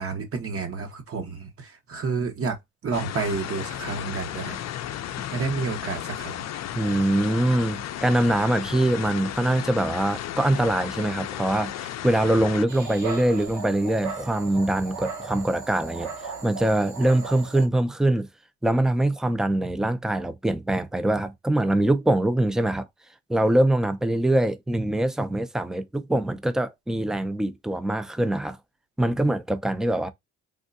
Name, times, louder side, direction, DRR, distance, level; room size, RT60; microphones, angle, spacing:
voice 1, 0.0-2.6 2.8-4.6 5.3-6.4, right 4 dB, 50° right, 1.0 m, -30 dB
sound 1, 2.9-12.7, left 12 dB, 60° left, 0.5 m, -34 dB
voice 2, 6.8-16.1 16.4-18.3 18.6-22.9 23.3-28.6 29.0-30.1, right 1 dB, ahead, 0.4 m, -23 dB
Dog, 12.7-17.7, right 5 dB, 70° right, 1.7 m, -36 dB
3.6 x 2.2 x 2.5 m
cardioid pair, 90°, 30 cm